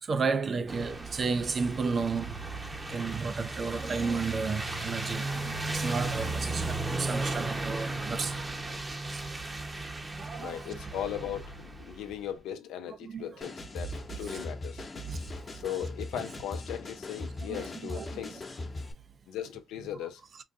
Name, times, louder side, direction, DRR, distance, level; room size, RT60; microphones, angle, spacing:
voice 1, 0.0-2.4 2.9-8.8 10.2-10.7 13.0-13.3 13.9-14.0 14.3-14.4 15.0-15.2 17.5-18.2, right 4 dB, 50° right, 0.5 m, -33 dB
sound 1, 0.7-12.2, right 2 dB, 25° right, 0.9 m, -35 dB
voice 2, 10.4-14.9 15.5-18.4 19.3-20.2, left 10 dB, 90° left, 0.5 m, -38 dB
sound 2, 13.4-18.9, left 2 dB, 40° left, 1.0 m, -40 dB
3.8 x 2.2 x 2.5 m
supercardioid pair, 60°, 0 cm